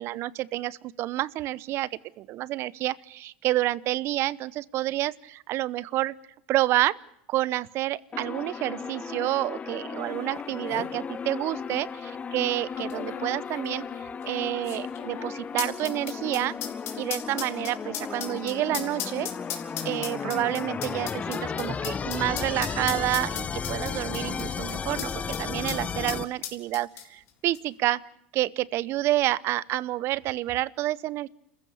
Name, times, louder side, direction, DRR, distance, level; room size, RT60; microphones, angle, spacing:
voice 1, 0.0-6.1 6.5-7.0 7.3-13.8 14.3-16.5 17.0-19.3 19.8-28.0 28.3-31.3, right 15 dB, 50° right, 23 dB, 0.8 m, -29 dB
sound 1, 8.1-26.2, left 6 dB, 25° left, 1.0 m, -34 dB
sound 2, 10.2-10.3 10.5-10.9 11.7-11.8 12.7-25.4 25.7-25.8 26.1-27.3 27.5-27.6, left 10 dB, 50° left, 3.8 m, -37 dB
27.5 x 15.0 x 8.4 m, 0.73 s
hypercardioid pair, 95°, 6 cm